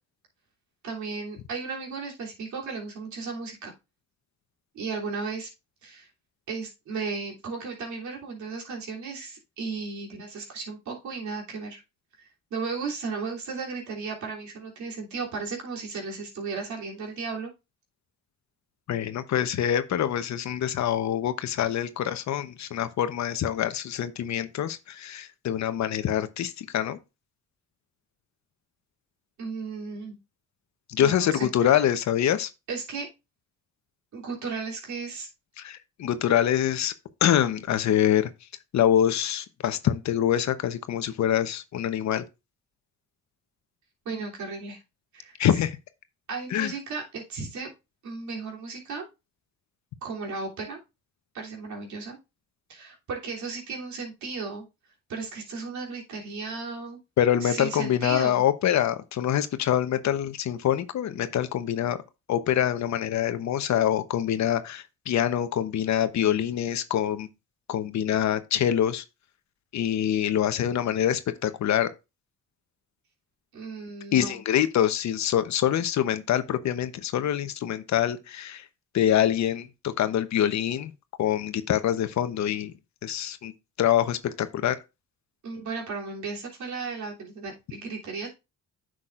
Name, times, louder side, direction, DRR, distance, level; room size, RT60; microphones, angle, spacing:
voice 1, 0.8-3.7 4.7-5.5 5.8-6.1 6.5-11.8 12.2-17.5 29.4-30.2 31.0-31.9 32.7-33.1 34.1-35.3 44.0-44.8 45.1-45.3 46.3-47.7 48.0-49.1 50.0-50.8 51.3-52.2 52.7-54.6 55.1-57.0 57.4-58.4 73.5-74.4 85.4-88.3, right 4 dB, 70° right, 3.2 m, -35 dB
voice 2, 18.9-27.0 30.9-32.5 35.6-36.9 37.2-38.3 38.7-42.2 45.4-45.8 46.5-46.7 57.2-62.0 62.3-67.3 67.7-69.0 69.7-71.9 74.1-78.7 78.9-80.9 81.2-82.7 83.0-83.5 83.8-84.8, left 10 dB, 65° left, 0.9 m, -25 dB
9.8 x 6.4 x 2.5 m
cardioid pair, 90°, 30 cm